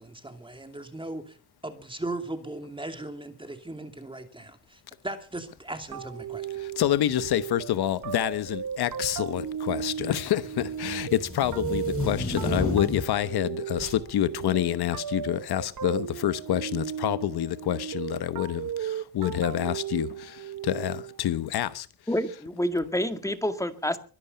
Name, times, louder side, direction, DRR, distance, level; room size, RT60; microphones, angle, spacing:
voice 1, 0.0-1.4 1.6-6.5, right 2 dB, 15° right, 2.7 m, -38 dB
sound 1, 5.9-21.3, right 9 dB, 55° right, 1.2 m, -35 dB
voice 2, 6.8-21.9, left 11 dB, 80° left, 1.1 m, -27 dB
sound 2, 7.0-7.1 8.1-8.6 8.9-13.2 13.8-14.0, left 2 dB, 35° left, 6.0 m, -33 dB
voice 3, 22.1-24.0, left 1 dB, 10° left, 2.0 m, -28 dB
23.0 x 11.0 x 5.6 m
cardioid pair, 95°, 38 cm